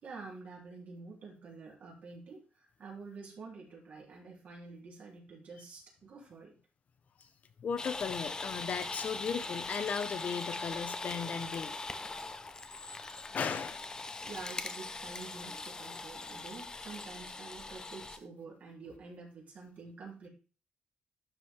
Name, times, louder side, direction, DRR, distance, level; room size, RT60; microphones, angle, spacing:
voice 1, 0.0-6.5 14.2-20.3, right 4 dB, 55° right, -3 dB, 3.7 m, -48 dB
voice 2, 7.6-11.7 13.3-13.9, left 6 dB, 55° left, 10 dB, 1.1 m, -36 dB
sound 1, 7.8-18.2, left 3 dB, 25° left, 0.8 m, -41 dB
12.0 x 5.1 x 3.7 m, 0.36 s
cardioid pair, 130°, 3 cm